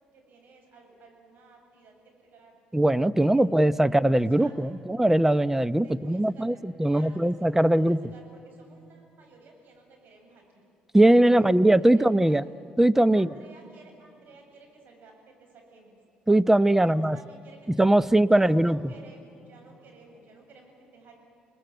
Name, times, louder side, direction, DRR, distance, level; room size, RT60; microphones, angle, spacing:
voice 1, 0.1-2.6 3.1-4.8 5.8-10.6 11.3-12.4 13.1-16.0 16.8-21.2, right 3 dB, 60° right, 2 dB, 7.6 m, -54 dB
voice 2, 2.7-8.0 10.9-12.5 12.8-13.3 16.3-17.2 17.8-18.8, right 1 dB, 10° right, 17 dB, 0.8 m, -20 dB
29.0 x 19.5 x 9.3 m, 2.5 s
supercardioid pair, 65°, 4 cm